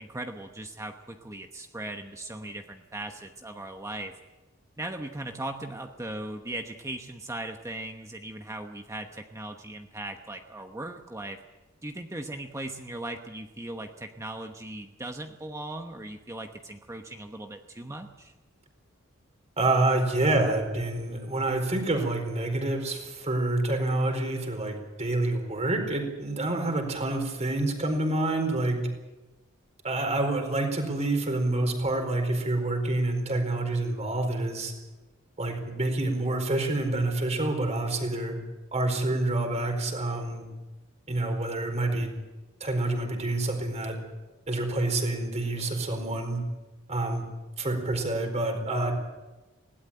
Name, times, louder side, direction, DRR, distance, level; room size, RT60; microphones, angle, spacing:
voice 1, 0.0-4.1 4.8-11.4 11.8-18.3, right 1 dB, 15° right, 5 dB, 1.0 m, -38 dB
voice 2, 19.6-28.8 29.8-34.7 35.4-38.4 38.7-40.5 41.1-42.1 42.6-44.0 44.5-46.4 46.9-47.3 47.6-48.9, right 2 dB, 35° right, 4 dB, 4.5 m, -27 dB
20.5 x 17.5 x 9.0 m, 1.1 s
head